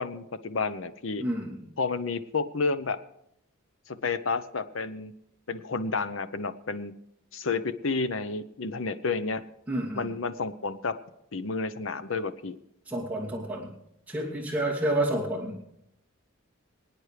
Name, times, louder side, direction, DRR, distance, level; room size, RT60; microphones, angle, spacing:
voice 1, 0.0-1.2 1.8-3.0 3.9-5.1 5.5-6.9 7.3-9.4 9.9-10.9 11.3-12.6, left 4 dB, 70° left, 12 dB, 0.8 m, -30 dB
voice 2, 1.2-1.6 9.7-10.1 12.9-13.7 14.1-15.6, right 1 dB, 5° right, -8 dB, 2.7 m, -29 dB
26.0 x 9.3 x 3.3 m, 0.79 s
head